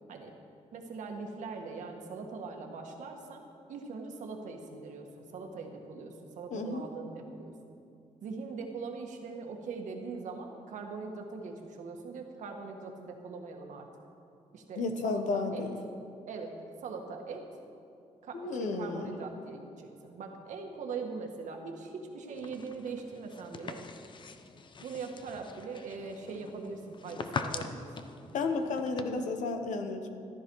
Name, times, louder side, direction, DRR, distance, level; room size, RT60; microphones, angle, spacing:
voice 1, 0.7-3.4 3.7-7.5 8.2-13.9 14.5-15.7 16.3-17.4 18.2-23.8 24.8-28.1, right 4 dB, 85° right, 3 dB, 1.6 m, -41 dB
voice 2, 6.5-6.9 14.8-15.8 18.3-19.1 28.3-30.1, left 3 dB, 90° left, 6 dB, 1.1 m, -32 dB
sound 1, 22.3-29.0, left 4 dB, 40° left, 0.7 m, -42 dB
14.5 x 12.5 x 4.7 m, 2.6 s
cardioid pair, 125°, 12 cm